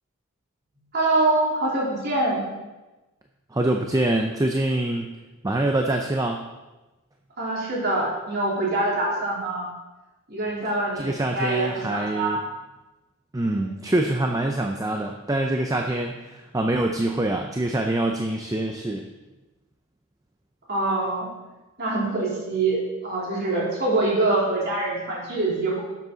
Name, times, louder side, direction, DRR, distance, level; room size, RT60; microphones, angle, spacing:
voice 1, 0.9-2.5 7.4-9.7 10.3-12.4 13.4-13.8 20.7-21.3 21.8-25.8, right 2 dB, 45° right, -5 dB, 3.5 m, -25 dB
voice 2, 3.5-5.1 5.4-6.4 11.0-12.4 13.3-19.1, right 1 dB, 15° right, 3 dB, 0.5 m, -25 dB
12.0 x 7.5 x 3.9 m, 1.1 s
head